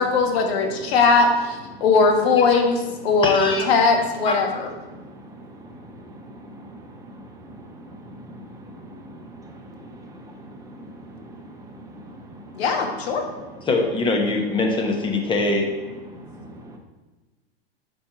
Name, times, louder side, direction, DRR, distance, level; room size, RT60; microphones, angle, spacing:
voice 1, 0.0-4.7 12.6-13.3, left 4 dB, 65° left, 3 dB, 1.3 m, -19 dB
voice 2, 3.2-3.7 4.3-4.4 13.7-15.7, left 2 dB, 15° left, 2 dB, 0.9 m, -22 dB
voice 3, 4.8-12.6 13.2-13.7 16.1-16.8, right 1 dB, 10° right, 1 dB, 0.8 m, -43 dB
5.2 x 4.4 x 5.6 m, 1.2 s
hypercardioid pair, 130°, 33 cm